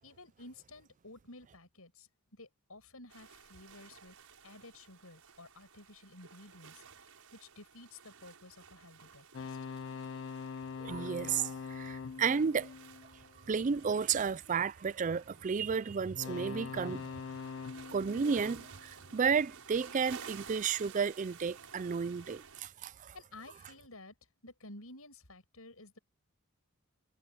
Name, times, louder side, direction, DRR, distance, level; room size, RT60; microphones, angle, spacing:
voice 1, 0.0-4.1 4.4-6.8 7.3-9.6 23.1-24.1 24.4-26.0, left 2 dB, 75° left, 7.5 m, -53 dB
sound 1, 3.1-22.6, right 6 dB, 80° right, 5.7 m, -54 dB
sound 2, 9.3-13.7 16.1-19.4, left 5 dB, 60° left, 0.4 m, -44 dB
voice 2, 10.8-12.7 13.0-13.1 13.5-17.2 17.9-23.1, right 6 dB, 35° right, 0.4 m, -32 dB
head